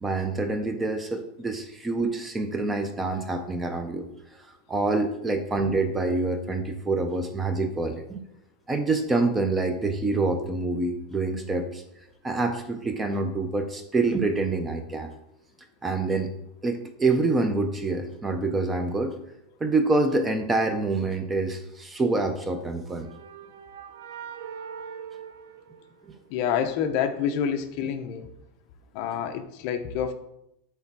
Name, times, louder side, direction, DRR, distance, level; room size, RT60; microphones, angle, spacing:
voice 1, 0.0-4.1 4.7-8.2 8.7-11.8 12.2-15.1 15.8-16.3 16.6-19.1 19.6-23.1 26.1-26.2, right 3 dB, 10° right, 7 dB, 0.4 m, -26 dB
sound 1, 22.5-26.4, right 7 dB, 65° right, 0.6 m, -42 dB
voice 2, 26.3-28.3 28.9-30.1, left 8 dB, 40° left, 8 dB, 0.7 m, -27 dB
8.4 x 3.4 x 5.9 m, 0.81 s
supercardioid pair, 175°, 0 cm